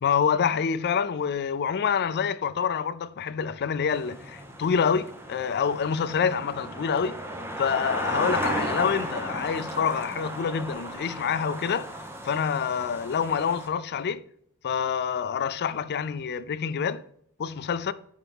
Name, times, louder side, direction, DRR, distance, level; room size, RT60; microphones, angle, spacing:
voice 1, 0.0-7.2 7.6-11.9 12.2-14.2 14.6-17.0 17.4-17.9, left 7 dB, 50° left, 0.4 m, -27 dB
sound 1, 3.9-13.7, right 1 dB, 10° right, 0.8 m, -35 dB
10.0 x 4.0 x 3.5 m
head